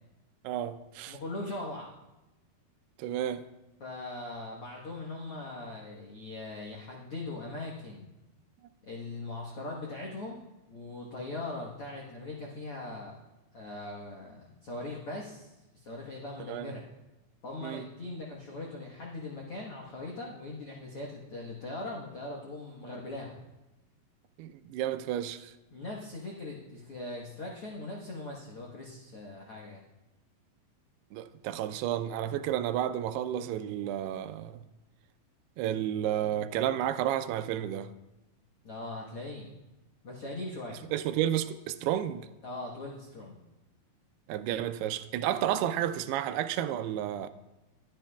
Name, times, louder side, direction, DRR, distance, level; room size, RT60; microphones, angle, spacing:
voice 1, 0.4-1.2 3.0-3.4 16.5-16.7 17.6-17.9 24.4-25.5 31.1-34.6 35.6-37.9 40.9-42.3 44.3-47.3, right 11 dB, 85° right, 2.6 m, -31 dB
voice 2, 1.1-1.9 3.8-8.1 8.8-10.4 10.7-13.1 13.5-16.8 17.4-23.4 25.7-29.8 38.6-39.5 40.0-40.8 42.4-43.4, left 2 dB, 75° left, 1.3 m, -40 dB
21.0 x 10.5 x 2.3 m
omnidirectional pair, 4.6 m